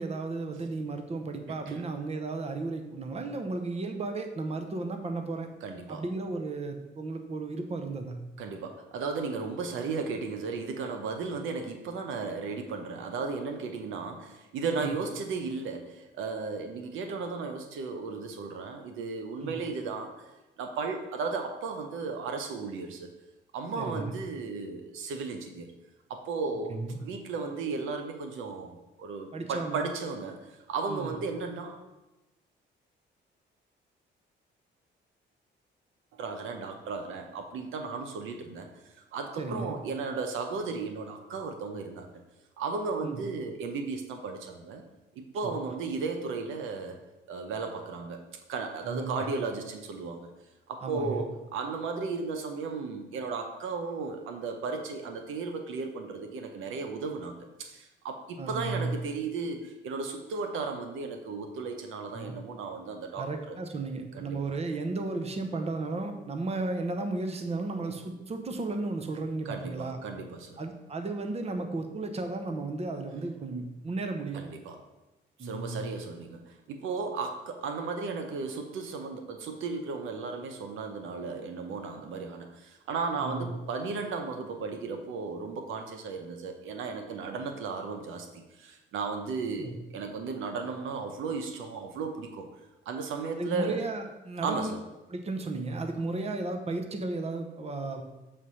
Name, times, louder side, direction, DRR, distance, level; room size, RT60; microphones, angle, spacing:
voice 1, 0.0-5.5 5.9-8.2 14.8-14.9 19.4-19.6 23.8-24.1 26.7-27.0 29.3-29.8 30.9-31.1 39.4-39.8 43.0-43.2 45.4-45.5 48.8-49.3 50.8-51.2 58.4-58.9 62.1-62.3 63.1-70.0 70.6-74.4 75.4-75.8 83.1-83.5 89.6-89.8 93.4-94.7 95.1-98.0, right 3 dB, 30° right, 6 dB, 0.9 m, -34 dB
voice 2, 5.6-6.0 8.4-20.3 20.6-23.1 23.5-25.7 26.1-31.8 36.1-38.7 39.1-42.1 42.6-44.8 45.1-47.0 47.3-48.2 48.5-50.3 50.7-63.6 64.1-64.4 69.4-70.6 74.3-74.8 75.4-92.5 92.9-93.8 94.4-94.8, right 4 dB, 85° right, 5 dB, 0.8 m, -35 dB
7.2 x 3.3 x 5.4 m, 1.0 s
cardioid pair, 90°, 20 cm